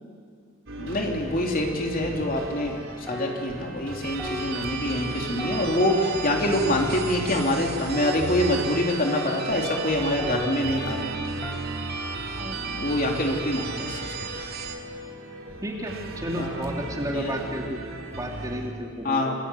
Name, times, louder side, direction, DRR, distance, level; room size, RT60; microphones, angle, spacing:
sound 1, 0.7-18.7, right 1 dB, 75° right, 3.7 m, -38 dB
voice 1, 0.8-11.2 12.8-14.1 16.3-16.7 17.1-17.4 19.0-19.3, left 1 dB, 45° left, 1 dB, 3.1 m, -25 dB
sound 2, 3.1-9.9 10.2-13.8 14.4-14.6, left 1 dB, 15° left, 4.0 m, -39 dB
sound 3, 4.0-14.8, right 5 dB, 55° right, 2.3 m, -35 dB
voice 2, 15.6-17.8 18.2-19.3, equal, 20° right, 0 dB, 3.1 m, -32 dB
27.0 x 20.5 x 8.7 m, 2.2 s
head